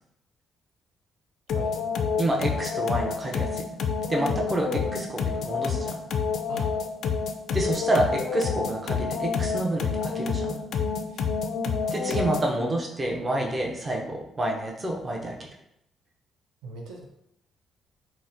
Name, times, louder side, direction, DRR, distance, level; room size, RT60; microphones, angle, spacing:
sound 1, 1.5-12.6, left 5 dB, 70° left, 0.3 m, -28 dB
voice 1, 1.5-2.0 4.8-4.9 6.5-6.7 11.1-11.3 13.3-13.4 16.6-17.0, right 2 dB, 85° right, 1 dB, 0.5 m, -41 dB
voice 2, 2.2-3.7 4.1-6.0 7.5-10.6 11.9-15.5, right 1 dB, 25° right, 0 dB, 0.6 m, -28 dB
3.9 x 2.1 x 2.5 m, 0.80 s
cardioid pair, 90°, 0 cm